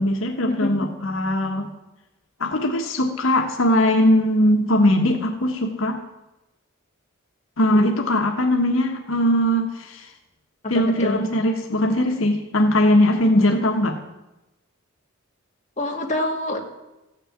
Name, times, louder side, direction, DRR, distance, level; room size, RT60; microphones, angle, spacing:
voice 1, 0.0-1.7 2.4-6.0 7.6-10.1 10.7-14.0, left 1 dB, 75° left, 2 dB, 1.4 m, -20 dB
voice 2, 10.7-11.2 15.8-16.7, left 1 dB, 35° left, 0 dB, 2.1 m, -26 dB
15.0 x 6.7 x 8.8 m, 0.98 s
head